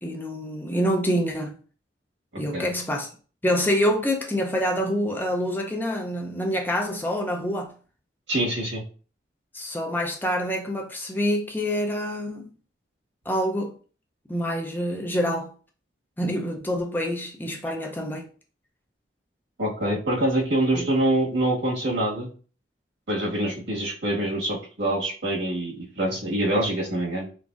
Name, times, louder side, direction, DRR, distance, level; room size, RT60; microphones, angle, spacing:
voice 1, 0.0-1.6 2.4-3.1 3.4-7.7 9.5-12.5 13.3-13.8 14.3-15.5 16.2-18.3 20.7-20.9, equal, 10° left, 0.5 m, -26 dB
voice 2, 2.3-2.7 8.3-8.8 19.6-22.3 23.1-27.3, right 1 dB, 80° right, 1.6 m, -25 dB
3.9 x 3.6 x 2.5 m
head